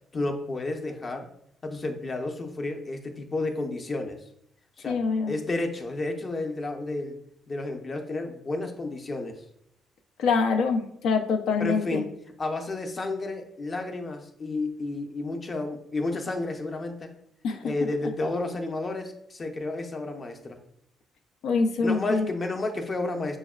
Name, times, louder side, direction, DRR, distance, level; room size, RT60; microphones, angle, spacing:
voice 1, 0.1-1.3 1.6-4.2 4.8-5.0 5.3-7.2 7.5-9.4 11.6-12.1 12.4-17.1 17.6-20.6 21.8-23.4, left 2 dB, 35° left, 4 dB, 0.6 m, -31 dB
voice 2, 4.9-5.4 10.2-12.1 17.4-17.7 21.4-22.3, left 4 dB, 85° left, 6 dB, 0.4 m, -25 dB
6.2 x 2.1 x 2.3 m, 0.71 s
cardioid pair, 90°, 0 cm